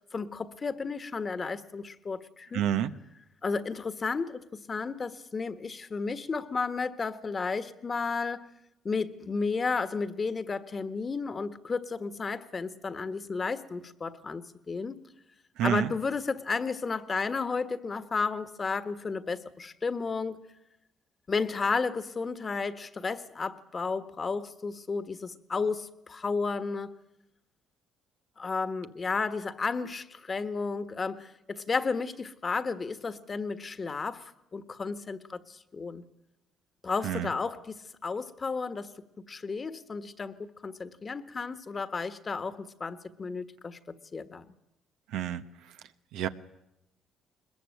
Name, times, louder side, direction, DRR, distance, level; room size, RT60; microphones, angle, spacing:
voice 1, 0.1-2.6 3.4-8.5 8.8-15.0 15.6-20.4 21.3-27.0 28.4-36.0 36.8-38.9 39.3-44.4, left 4 dB, 35° left, 12 dB, 1.5 m, -33 dB
voice 2, 2.5-2.9 15.6-15.9 37.0-37.3 45.1-45.8 46.1-46.3, right 10 dB, 80° right, 9 dB, 1.0 m, -29 dB
21.5 x 20.5 x 9.1 m, 0.88 s
supercardioid pair, 80°, 0 cm